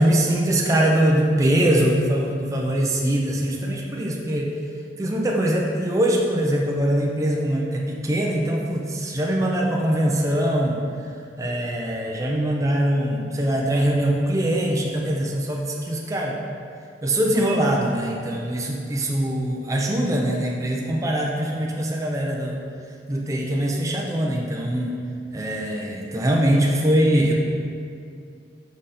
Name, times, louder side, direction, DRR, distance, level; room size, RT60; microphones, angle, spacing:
voice 1, 0.0-4.5 5.0-10.8 11.4-16.4 17.0-22.6 23.1-24.9 25.3-27.3, right 1 dB, 15° right, -1 dB, 0.5 m, -22 dB
5.4 x 5.1 x 4.2 m, 2.4 s
head